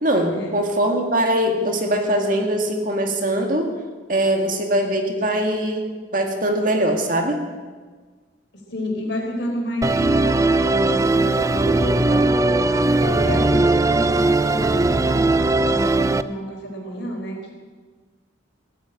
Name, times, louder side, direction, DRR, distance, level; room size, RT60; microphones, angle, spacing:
voice 1, 0.0-3.7 4.1-7.4 12.1-12.2, right 1 dB, 45° right, 3 dB, 1.9 m, -22 dB
voice 2, 8.5-12.4 12.9-17.5, equal, 60° left, 1 dB, 3.8 m, -30 dB
Musical instrument, 9.8-16.2, right 2 dB, 15° right, 0.3 m, -19 dB
16.0 x 9.2 x 8.9 m, 1.4 s
head